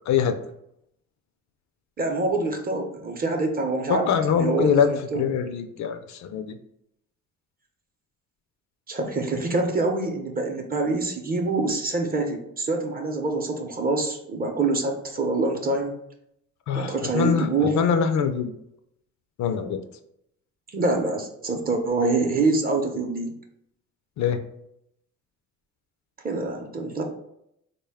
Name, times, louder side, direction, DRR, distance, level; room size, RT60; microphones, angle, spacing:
voice 1, 2.0-4.1 4.3-5.2 8.9-16.0 16.7-17.8 20.7-23.3 26.2-27.0, right 3 dB, 30° right, 3 dB, 0.6 m, -25 dB
voice 2, 3.9-6.6 16.7-18.5 19.4-19.8 24.2-24.4, left 7 dB, 65° left, 8 dB, 0.4 m, -24 dB
3.7 x 2.2 x 3.5 m, 0.76 s
cardioid pair, 90°, 30 cm